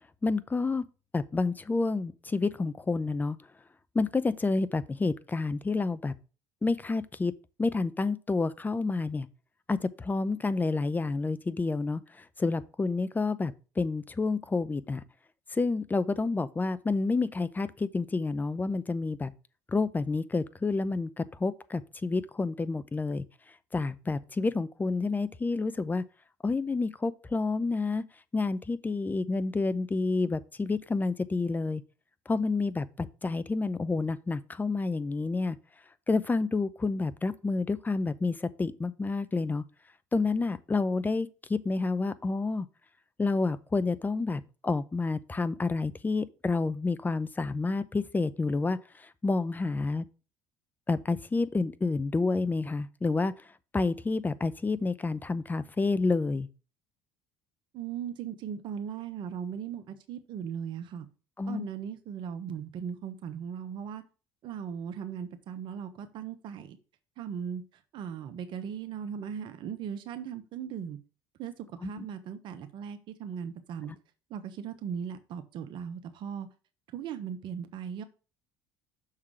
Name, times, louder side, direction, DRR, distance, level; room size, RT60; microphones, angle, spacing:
voice 1, 0.2-0.8 1.1-3.4 3.9-6.1 6.6-7.3 7.6-9.3 9.7-15.0 15.5-19.3 19.7-23.2 23.7-26.0 26.4-28.0 28.3-31.8 32.3-35.6 36.1-39.6 40.1-42.7 43.2-48.8 49.2-50.0 50.9-53.3 53.7-56.5 61.4-61.7 71.8-72.0, left 3 dB, 20° left, 0.6 m, -29 dB
voice 2, 57.7-61.1 61.5-64.0 64.4-66.8 67.2-67.6 67.9-71.0 71.4-73.9 74.3-76.5 76.9-78.0, right 8 dB, 55° right, 1.1 m, -38 dB
6.5 x 3.6 x 6.1 m
hypercardioid pair, 65°, 10 cm